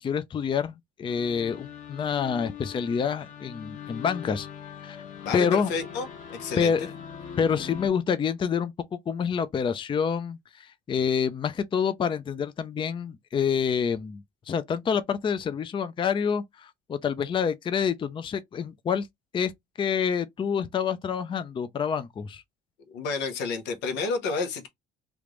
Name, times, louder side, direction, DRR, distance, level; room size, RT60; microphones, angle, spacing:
voice 1, 0.0-4.5 4.8-5.0 5.3-5.7 6.6-6.9 7.4-8.7 9.1-14.2 14.5-19.1 19.3-19.5 19.8-22.4, left 7 dB, 30° left, 0.4 m, -27 dB
sound 1, 1.1-7.9, left 8 dB, 50° left, 1.2 m, -41 dB
voice 2, 5.2-6.7 22.9-24.7, left 4 dB, 90° left, 1.0 m, -30 dB
3.4 x 2.5 x 3.1 m
cardioid pair, 110°, 17 cm